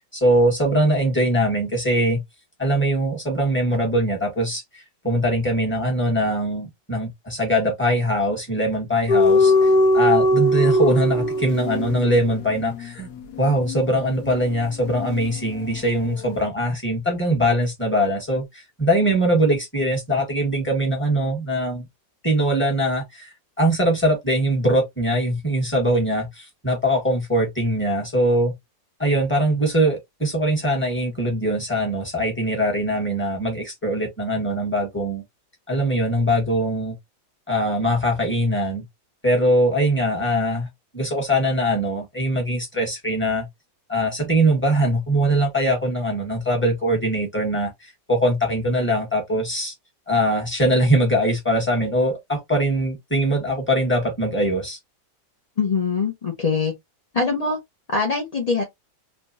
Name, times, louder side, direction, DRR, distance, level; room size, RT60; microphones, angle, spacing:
voice 1, 0.1-2.2 2.6-13.1 13.4-21.8 22.2-23.3 23.6-28.5 29.0-35.2 35.7-36.9 37.5-38.8 39.2-40.7 40.9-43.5 43.9-49.7 50.1-54.8, equal, 5° left, 1.4 m, -22 dB
sound 1, 9.1-15.9 16.1-16.4, left 1 dB, 65° left, 1.2 m, -21 dB
voice 2, 55.6-56.7 57.1-57.6 57.9-58.6, left 4 dB, 40° left, 0.5 m, -23 dB
3.5 x 2.9 x 2.6 m
omnidirectional pair, 2.0 m